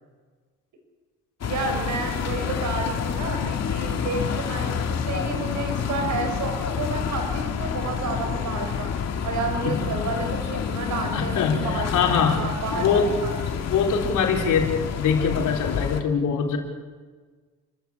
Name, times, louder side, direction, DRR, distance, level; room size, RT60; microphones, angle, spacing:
sound 1, 1.4-16.0, left 7 dB, 60° left, 2.3 m, -28 dB
voice 1, 1.4-8.9 9.2-13.5, right 3 dB, 75° right, 5 dB, 5.5 m, -31 dB
voice 2, 11.1-12.4 12.7-13.1 13.5-16.6, left 6 dB, 80° left, 1 dB, 4.2 m, -23 dB
29.0 x 13.5 x 8.6 m, 1.4 s
cardioid pair, 90°, 30 cm